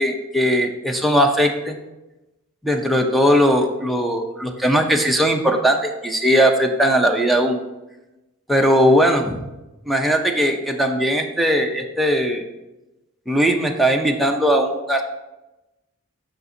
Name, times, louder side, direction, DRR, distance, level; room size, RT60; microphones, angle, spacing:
voice 1, 0.0-1.8 2.6-7.6 8.5-9.4 9.9-12.4 13.3-15.0, equal, ahead, 4 dB, 0.5 m, -19 dB
7.6 x 5.8 x 2.7 m, 0.99 s
head